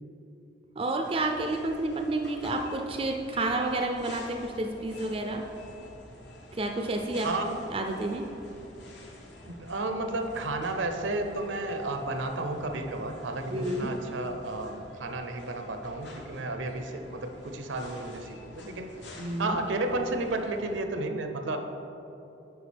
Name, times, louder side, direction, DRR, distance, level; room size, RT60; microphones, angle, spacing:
voice 1, 0.8-5.4 6.5-7.3 7.7-8.3 13.5-13.9 19.2-19.6, right 2 dB, 30° right, 3 dB, 0.4 m, -30 dB
sound 1, 1.0-20.8, left 1 dB, 65° left, 1.0 m, -49 dB
voice 2, 7.2-7.6 9.4-18.9 19.4-21.6, right 2 dB, 80° right, 6 dB, 0.6 m, -32 dB
10.5 x 4.7 x 3.4 m, 3.0 s
head